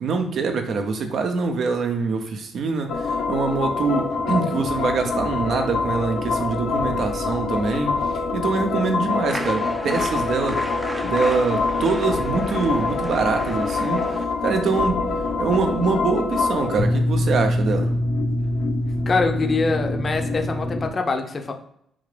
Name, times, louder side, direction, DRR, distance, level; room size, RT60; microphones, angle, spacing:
voice 1, 0.0-7.9 8.3-10.6 11.0-14.0 14.4-15.0 15.4-17.9, right 4 dB, 65° right, 5 dB, 0.6 m, -24 dB
sound 1, 2.9-20.9, left 3 dB, 70° left, 0.7 m, -25 dB
sound 2, 9.3-14.3, right 1 dB, 15° right, 0.4 m, -34 dB
voice 2, 19.1-21.5, left 4 dB, 35° left, 4 dB, 0.6 m, -24 dB
3.6 x 2.5 x 3.3 m, 0.72 s
cardioid pair, 90°, 0 cm